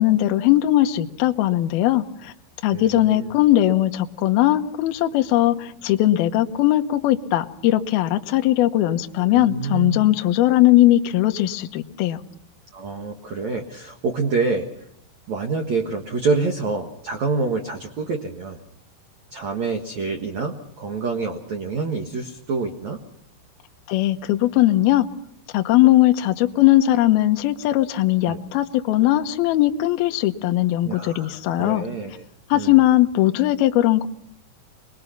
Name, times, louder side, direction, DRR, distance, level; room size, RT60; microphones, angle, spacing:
voice 1, 0.0-2.3 2.6-12.2 23.9-25.1 25.5-31.9 32.5-34.1, left 14 dB, 90° left, 6 dB, 2.1 m, -19 dB
voice 2, 2.7-3.3 9.2-10.0 12.7-14.7 15.3-18.6 19.3-23.0 28.3-28.4 30.8-32.2 32.5-32.8, right 4 dB, 85° right, 3 dB, 1.6 m, -27 dB
26.0 x 20.5 x 5.8 m, 0.70 s
omnidirectional pair, 6.0 m